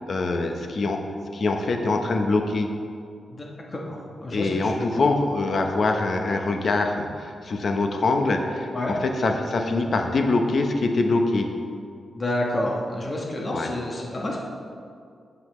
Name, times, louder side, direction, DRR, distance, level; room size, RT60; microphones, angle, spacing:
voice 1, 0.1-2.7 4.3-8.7 9.0-11.5 13.5-13.7, left 3 dB, 50° left, 4 dB, 0.8 m, -24 dB
voice 2, 3.7-5.1 8.7-8.9 12.1-14.4, left 1 dB, 30° left, -2 dB, 1.2 m, -29 dB
15.5 x 5.6 x 3.2 m, 2.3 s
wide cardioid pair, 145°, 0 cm